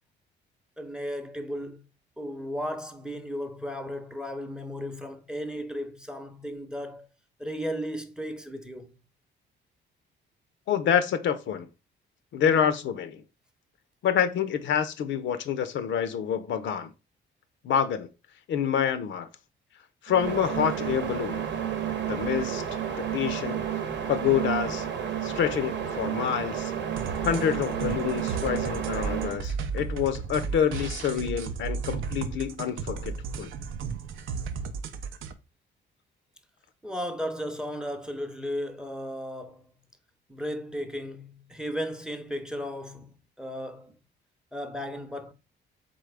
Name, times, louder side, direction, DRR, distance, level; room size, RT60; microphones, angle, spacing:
voice 1, 0.8-1.8 2.2-7.1 7.4-9.0 36.8-39.6 40.3-44.0 44.5-45.3, equal, 5° right, 0.6 m, -35 dB
voice 2, 10.7-11.7 12.3-13.2 14.0-16.9 17.6-18.1 18.5-19.3 20.0-21.5 22.1-22.6 23.0-23.6 24.1-24.8 25.2-26.7 27.2-33.5, left 8 dB, 70° left, 0.5 m, -27 dB
sound 1, 20.1-29.4, right 9 dB, 65° right, 0.9 m, -31 dB
sound 2, 26.9-35.3, right 5 dB, 80° right, 0.5 m, -34 dB
3.9 x 3.7 x 3.3 m
cardioid pair, 90°, 20 cm